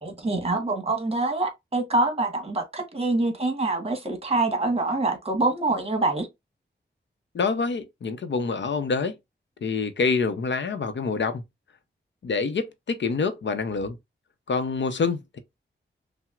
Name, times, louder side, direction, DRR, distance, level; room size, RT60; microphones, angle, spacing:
voice 1, 0.0-6.3, right 2 dB, 30° right, 1.3 m, -25 dB
voice 2, 7.3-9.1 9.6-11.4 12.2-14.0 14.5-15.4, left 4 dB, 65° left, 0.7 m, -26 dB
5.7 x 2.1 x 2.4 m
cardioid pair, 70°, 20 cm